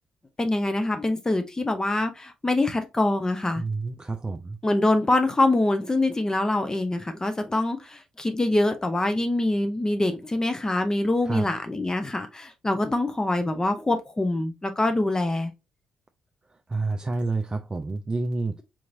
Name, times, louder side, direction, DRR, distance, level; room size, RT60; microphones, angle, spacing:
voice 1, 0.4-3.6 4.6-15.5, left 2 dB, 20° left, 0.6 m, -24 dB
voice 2, 3.6-4.6 11.3-11.5 16.7-18.6, right 3 dB, 25° right, 0.4 m, -28 dB
3.8 x 3.0 x 2.5 m
figure-of-eight pair, 40°, 3 cm